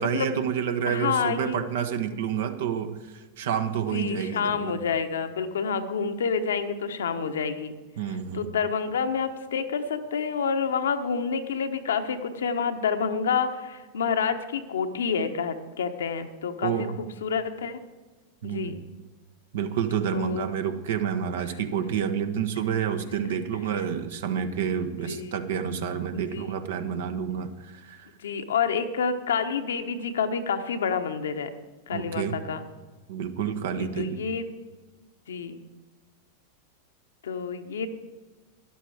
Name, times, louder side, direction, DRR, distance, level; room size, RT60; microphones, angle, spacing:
voice 1, 0.0-3.0 3.4-4.8 8.0-8.5 16.6-17.0 18.4-18.8 19.5-28.1 31.9-32.4 33.1-34.2, right 8 dB, 55° right, 9 dB, 1.1 m, -29 dB
voice 2, 0.9-1.7 3.9-7.7 8.3-16.9 17.2-17.8 18.4-18.8 20.1-20.5 24.9-25.3 26.1-26.4 28.2-31.6 31.9-32.6 33.7-34.5 35.3-35.6 37.2-37.9, left 6 dB, 65° left, 8 dB, 1.0 m, -28 dB
12.5 x 11.0 x 4.9 m, 1.3 s
figure-of-eight pair, 90°, 0 cm